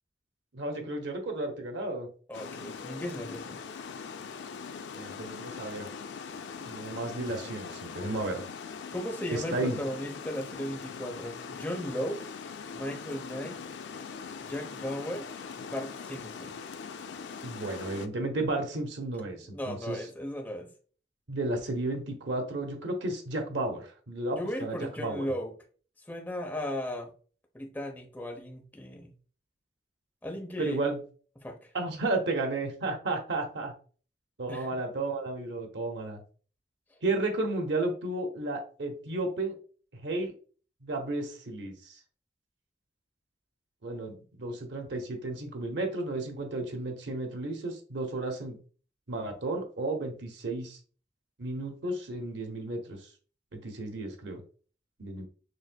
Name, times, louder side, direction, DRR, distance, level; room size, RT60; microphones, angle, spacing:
voice 1, 0.5-2.1 5.0-5.9 6.6-8.4 9.3-9.8 17.4-20.0 21.3-25.3 30.6-31.0 31.7-33.7 34.4-36.2 37.0-39.5 40.0-40.3 40.8-41.7 43.8-48.6 49.1-50.8 51.4-53.0 53.5-54.4 55.0-55.3, right 2 dB, 90° right, 3 dB, 0.8 m, -33 dB
Water, 2.3-18.1, left 6 dB, 85° left, 0.4 m, -41 dB
voice 2, 2.3-3.6 8.9-12.2 12.7-13.6 14.4-15.3 15.6-16.6 19.4-20.7 24.4-25.5 26.1-27.1 27.5-29.2 30.2-30.8 31.4-31.7 34.5-34.7, equal, 10° left, 2 dB, 0.6 m, -36 dB
6.3 x 2.6 x 2.2 m, 0.41 s
head